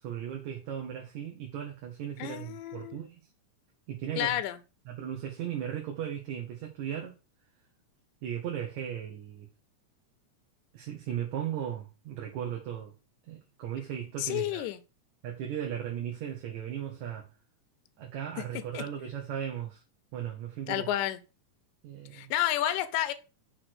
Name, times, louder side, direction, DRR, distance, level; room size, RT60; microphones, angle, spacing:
voice 1, 0.0-3.2 3.9-4.4 4.9-7.1 8.2-9.5 10.7-12.9 13.3-14.7 15.2-17.3 18.0-19.8 20.1-20.9 21.8-22.3, right 9 dB, 70° right, 2.3 m, -37 dB
voice 2, 2.2-3.0 4.2-4.6 14.2-14.8 18.7-18.8 20.7-21.2 22.1-23.1, left 13 dB, 80° left, 1.9 m, -30 dB
6.1 x 3.2 x 5.9 m
omnidirectional pair, 3.6 m